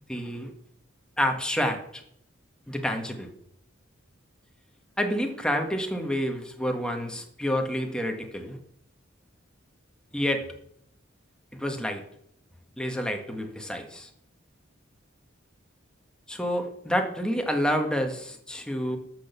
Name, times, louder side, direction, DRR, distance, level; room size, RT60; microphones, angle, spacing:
voice 1, 0.1-0.5 1.2-2.0 2.7-3.3 5.0-8.6 10.1-10.5 11.6-12.0 12.8-14.1 16.3-19.0, equal, 5° left, 3 dB, 1.6 m, -28 dB
13.0 x 6.4 x 7.0 m, 0.70 s
head